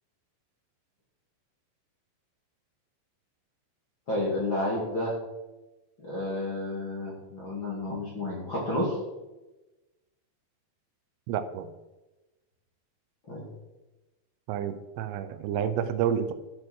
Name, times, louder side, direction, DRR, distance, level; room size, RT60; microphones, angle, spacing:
voice 1, 4.1-5.2 6.0-9.0 13.3-13.5, left 1 dB, 35° left, -5 dB, 2.2 m, -31 dB
voice 2, 11.3-11.7 14.5-16.3, right 8 dB, 85° right, 11 dB, 3.3 m, -29 dB
12.0 x 6.8 x 6.2 m, 1.1 s
omnidirectional pair, 5.7 m